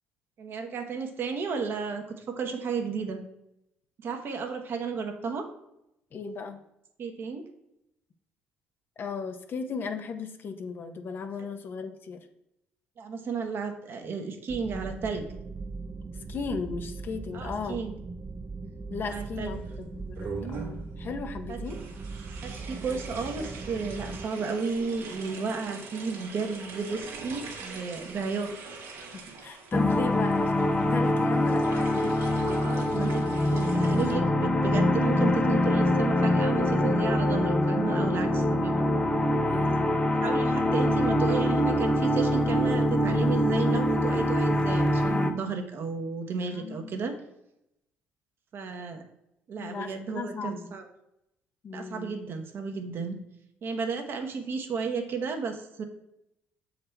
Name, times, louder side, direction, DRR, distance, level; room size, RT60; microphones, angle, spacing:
voice 1, 0.4-3.2 4.0-5.5 7.0-7.4 13.0-15.4 17.3-17.9 19.1-19.5 21.5-21.6 22.4-28.5 32.4-33.2 33.5-38.9 40.2-47.1 48.5-49.0 49.5-50.9 51.7-53.2 53.6-55.8, right 5 dB, 55° right, 5 dB, 1.1 m, -33 dB
voice 2, 6.1-6.6 9.0-12.2 16.3-17.8 18.9-21.8 29.0-32.1 39.4-40.0 46.5-47.1 49.6-50.7 51.6-52.2, left 5 dB, 50° left, 7 dB, 0.8 m, -36 dB
sound 1, 14.5-24.2, right 4 dB, 30° right, 0.5 m, -39 dB
sound 2, 19.1-19.7 20.1-20.9 21.6-34.1, right 4 dB, 70° right, 1.3 m, -43 dB
sound 3, 29.7-45.3, left 1 dB, 20° left, 0.8 m, -24 dB
6.6 x 4.1 x 4.4 m, 0.84 s
supercardioid pair, 70°, 5 cm